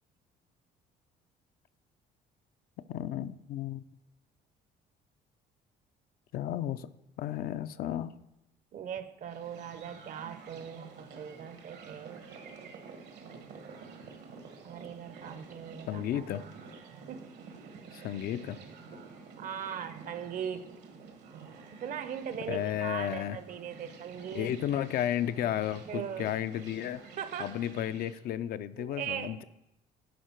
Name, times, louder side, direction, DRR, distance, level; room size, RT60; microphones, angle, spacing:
voice 1, 2.9-3.8 6.3-6.9 7.2-8.1 15.9-16.5 17.9-18.6 22.5-23.4 24.3-27.1 27.4-29.4, left 11 dB, 65° left, 12 dB, 0.4 m, -33 dB
voice 2, 8.7-12.3 14.6-16.5 17.1-17.3 19.4-20.7 21.7-24.5 25.9-26.3 27.2-27.6 28.8-29.4, right 8 dB, 50° right, 11 dB, 0.7 m, -39 dB
sound 1, 9.2-28.2, right 5 dB, 75° right, 1.4 m, -49 dB
11.0 x 5.0 x 4.5 m, 0.91 s
cardioid pair, 110°, 17 cm